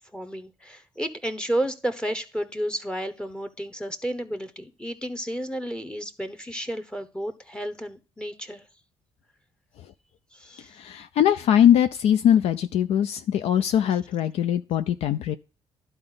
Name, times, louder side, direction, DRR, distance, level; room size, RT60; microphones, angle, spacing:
voice 1, 0.1-8.6 10.3-10.7, right 1 dB, 10° left, 0.8 m, -32 dB
voice 2, 10.8-15.4, left 10 dB, 70° left, 0.4 m, -21 dB
11.0 x 4.0 x 3.8 m
supercardioid pair, 60°, 11 cm